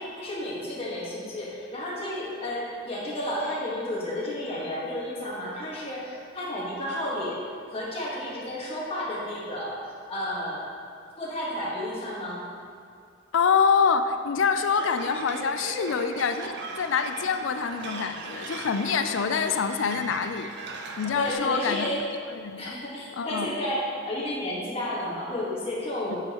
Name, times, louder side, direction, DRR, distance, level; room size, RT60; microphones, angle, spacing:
voice 1, 0.0-7.4 7.7-10.6 11.2-12.5 21.1-22.0 22.6-26.2, left 1 dB, 30° left, -6 dB, 1.6 m, -32 dB
voice 2, 13.3-20.5 21.0-21.9 22.3-22.6 23.2-23.5 26.1-26.2, left 6 dB, 75° left, 9 dB, 0.4 m, -25 dB
sound 1, 14.5-21.3, right 3 dB, 60° right, 0.6 m, -38 dB
8.7 x 6.2 x 3.0 m, 2.3 s
head